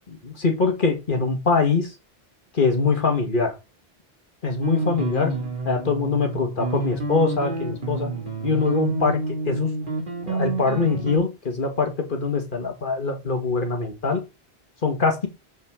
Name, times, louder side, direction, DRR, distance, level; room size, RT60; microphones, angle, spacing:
voice 1, 0.2-1.9 2.5-3.5 4.4-5.3 5.6-8.1 8.4-9.2 9.5-9.7 10.2-14.2 14.8-15.3, left 4 dB, 55° left, 4 dB, 1.8 m, -23 dB
sound 1, 4.6-11.2, right 2 dB, 55° right, 2.2 m, -28 dB
7.7 x 5.6 x 3.7 m, 0.26 s
omnidirectional pair, 1.1 m